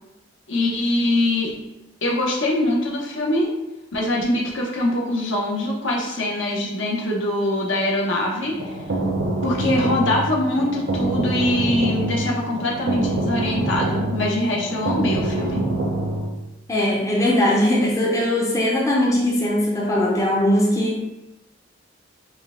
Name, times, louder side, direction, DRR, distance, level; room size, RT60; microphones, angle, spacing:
voice 1, 0.5-1.5 2.0-3.5 3.9-8.6 9.4-15.7, left 1 dB, 75° left, -2 dB, 0.8 m, -23 dB
sound 1, 8.4-16.3, right 2 dB, 65° right, 0.7 m, -25 dB
voice 2, 16.7-21.0, left 1 dB, 15° left, -3 dB, 0.5 m, -20 dB
4.5 x 2.2 x 3.5 m, 0.95 s
head